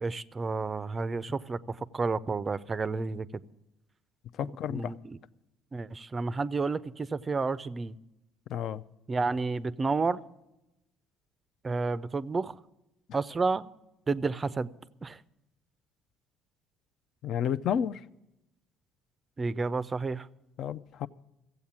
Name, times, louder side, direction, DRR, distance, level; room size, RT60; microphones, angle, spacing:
voice 1, 0.0-3.3 4.7-5.2 5.7-7.9 9.1-10.2 11.6-12.6 13.1-13.7 14.1-14.7 15.0-15.2 19.4-20.3, right 4 dB, 25° right, 16 dB, 0.4 m, -30 dB
voice 2, 4.4-4.9 8.5-8.8 17.2-18.0 20.6-21.1, left 9 dB, 55° left, 16 dB, 0.5 m, -31 dB
15.5 x 8.1 x 7.2 m, 0.92 s
cardioid pair, 125°, 0 cm